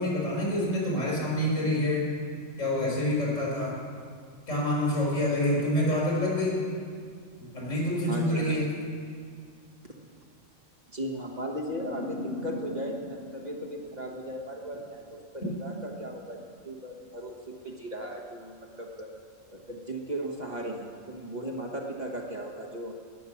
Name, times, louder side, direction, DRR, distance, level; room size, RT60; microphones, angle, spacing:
voice 1, 0.0-2.1 2.6-3.7 4.5-6.6 7.5-8.7, left 1 dB, 85° left, -5 dB, 5.4 m, -27 dB
voice 2, 8.1-8.6 10.9-16.4 16.6-19.1 19.5-23.0, right 1 dB, 35° right, 0 dB, 1.5 m, -37 dB
sound 1, 11.7-14.7, left 2 dB, 50° right, 1.4 m, -39 dB
19.0 x 7.6 x 7.2 m, 2.2 s
omnidirectional pair, 1.3 m